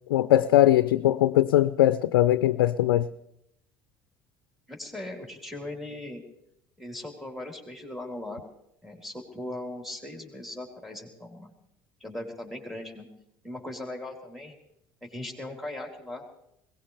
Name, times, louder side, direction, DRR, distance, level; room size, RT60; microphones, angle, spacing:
voice 1, 0.1-3.1, left 13 dB, 85° left, 0.5 m, -21 dB
voice 2, 4.7-6.2 6.8-8.4 8.8-11.5 12.0-13.1 13.4-14.5 15.0-16.3, left 1 dB, ahead, 4.2 m, -39 dB
22.0 x 19.5 x 3.4 m
hypercardioid pair, 70°, 12 cm